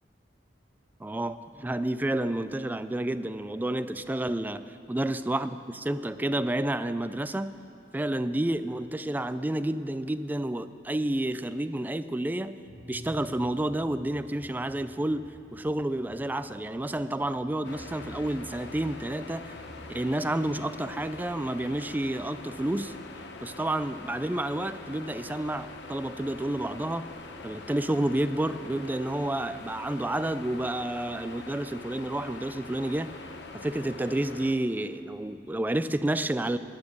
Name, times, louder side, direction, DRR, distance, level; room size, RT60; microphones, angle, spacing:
voice 1, 1.0-7.6 7.9-12.6 12.9-19.5 19.9-23.0 23.4-27.1 27.4-33.2 33.5-36.6, right 1 dB, 10° right, 12 dB, 0.3 m, -30 dB
sound 1, 12.7-21.2, equal, 85° right, 1.5 m, -52 dB
sound 2, 17.6-34.5, left 3 dB, 70° left, 0.9 m, -44 dB
14.0 x 9.3 x 6.6 m, 2.6 s
head